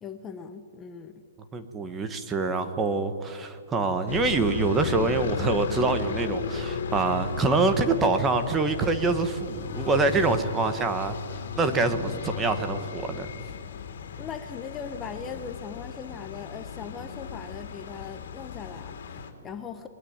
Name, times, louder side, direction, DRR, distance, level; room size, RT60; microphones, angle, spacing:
voice 1, 0.0-1.1 14.2-19.9, left 6 dB, 15° left, 7 dB, 1.2 m, -39 dB
voice 2, 1.5-13.3, right 3 dB, 15° right, 9 dB, 1.5 m, -25 dB
sound 1, 4.1-19.3, left 6 dB, 60° left, 3.6 m, -35 dB
29.5 x 21.0 x 9.0 m, 2.2 s
hypercardioid pair, 160°, 0 cm